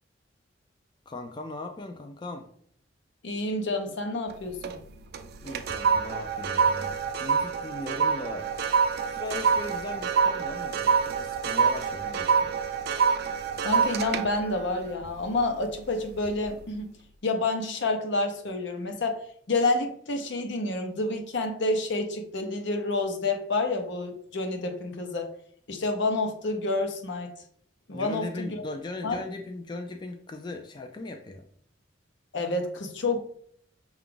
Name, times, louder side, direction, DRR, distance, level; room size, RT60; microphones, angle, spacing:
voice 1, 1.1-2.5 5.4-8.5 9.0-12.5 27.9-31.5, left 2 dB, 25° left, 4 dB, 0.3 m, -38 dB
voice 2, 3.2-4.8 13.6-16.9 17.2-19.2 19.5-25.3 25.7-27.3 27.9-28.5 29.0-29.2 32.3-33.2, left 2 dB, 65° left, 5 dB, 0.7 m, -29 dB
sound 1, 4.3-4.8 5.1-15.7 16.2-16.5, right 6 dB, 55° right, 0.4 m, -26 dB
5.8 x 2.4 x 3.7 m, 0.64 s
head